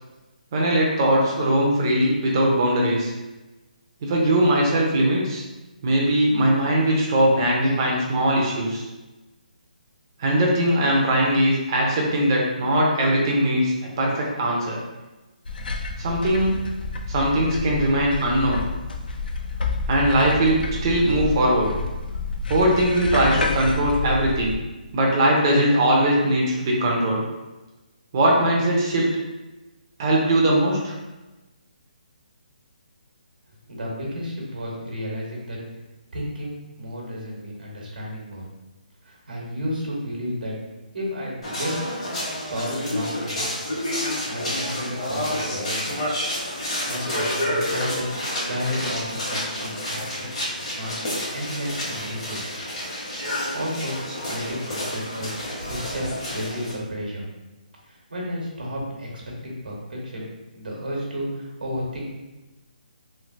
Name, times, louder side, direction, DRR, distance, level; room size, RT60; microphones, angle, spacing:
voice 1, 0.5-3.1 4.0-5.4 5.8-8.8 10.2-14.8 16.0-16.5 17.1-18.6 19.9-21.7 22.5-24.6 24.9-27.2 28.1-29.1 30.0-30.9, right 1 dB, 30° right, -2 dB, 0.6 m, -20 dB
sound 1, 15.5-24.6, left 3 dB, 85° left, 0.4 m, -29 dB
voice 2, 33.7-35.6 36.1-38.4 39.0-40.5 40.9-41.8 42.5-43.5 44.0-46.0 46.8-50.3 50.7-52.5 53.3-54.0 54.3-55.3 55.6-56.0 56.3-57.2 57.9-60.3 60.5-62.1, equal, 80° right, -3 dB, 1.2 m, -32 dB
sound 2, 41.4-56.7, left 1 dB, 45° left, 1.3 m, -29 dB
3.2 x 2.6 x 2.5 m, 1.1 s
hypercardioid pair, 170°, 5 cm